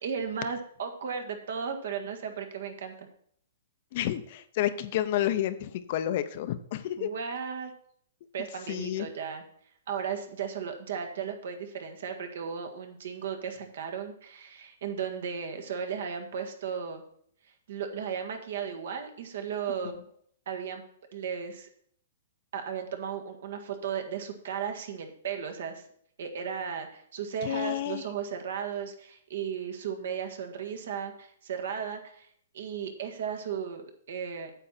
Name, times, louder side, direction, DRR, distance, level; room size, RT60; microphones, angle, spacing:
voice 1, 0.0-3.1 7.0-7.7 8.3-9.4 9.9-17.0 17.4-20.0 20.4-20.8 21.1-21.7 22.5-25.8 26.2-32.3 32.5-34.5, right 7 dB, 70° right, 5 dB, 1.7 m, -35 dB
voice 2, 3.9-7.1 8.7-9.1 27.4-28.0, left 12 dB, 45° left, 11 dB, 0.7 m, -30 dB
8.9 x 7.5 x 4.3 m, 0.64 s
hypercardioid pair, 155°, 0 cm